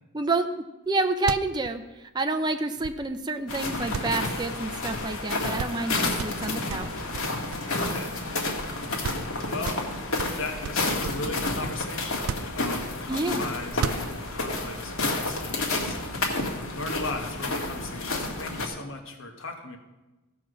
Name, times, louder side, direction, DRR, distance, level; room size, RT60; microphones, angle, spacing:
voice 1, 0.1-7.0 13.1-13.4, right 2 dB, 20° right, 6 dB, 0.6 m, -29 dB
sound 1, 0.9-1.0 1.1-3.3 3.9-5.0 5.2-5.3 5.6-5.9 6.2-8.3 8.7-8.8 9.0-9.3 9.6-11.3 12.1-13.1 13.7-14.5, right 7 dB, 85° right, 0.4 m, -35 dB
sound 2, 3.5-18.7, left 2 dB, 80° left, 1.9 m, -30 dB
voice 2, 7.7-8.1 9.5-9.8 10.3-16.2 16.7-19.8, left 2 dB, 65° left, 4 dB, 1.4 m, -37 dB
15.0 x 6.0 x 6.3 m, 1.1 s
head